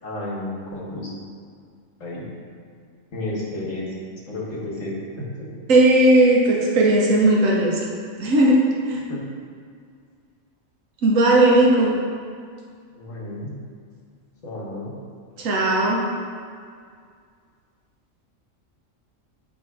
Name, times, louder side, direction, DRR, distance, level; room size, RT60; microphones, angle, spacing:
voice 1, 0.0-1.1 2.0-2.3 3.1-4.0 4.3-5.5 9.1-9.2 12.9-13.6 14.4-14.9, left 1 dB, 75° left, -4 dB, 1.8 m, -32 dB
voice 2, 5.7-7.9 8.2-8.6 8.9-9.0 11.0-11.9 15.4-16.0, right 1 dB, 85° right, -3 dB, 1.3 m, -17 dB
9.0 x 3.1 x 4.8 m, 2.1 s
omnidirectional pair, 1.3 m